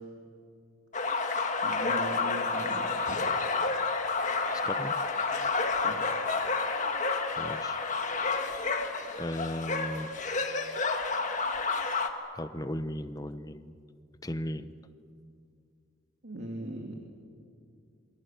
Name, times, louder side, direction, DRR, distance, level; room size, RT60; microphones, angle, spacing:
sound 1, 0.9-12.1, left 4 dB, 35° left, 1.8 m, -30 dB
voice 1, 1.6-3.2 5.8-6.2 16.2-17.0, right 1 dB, 55° right, 1 dB, 2.5 m, -39 dB
voice 2, 4.5-5.1 7.4-7.8 9.2-10.1 12.3-13.7 14.2-14.7, left 1 dB, 15° left, 11 dB, 0.9 m, -36 dB
28.0 x 23.5 x 9.1 m, 2.4 s
head